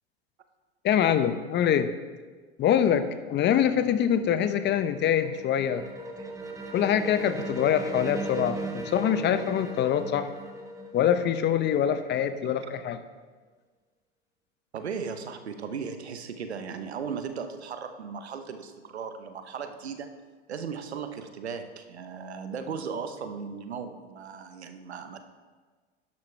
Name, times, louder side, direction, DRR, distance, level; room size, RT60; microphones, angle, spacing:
voice 1, 0.8-1.9 2.6-5.9 6.7-10.3 10.9-13.0, left 9 dB, 35° left, 11 dB, 0.8 m, -24 dB
sound 1, 4.6-12.2, right 2 dB, 10° right, 1.2 m, -37 dB
voice 2, 14.7-20.1 20.5-25.2, right 6 dB, 90° right, 8 dB, 1.0 m, -37 dB
11.5 x 11.0 x 3.3 m, 1.4 s
hypercardioid pair, 95°, 32 cm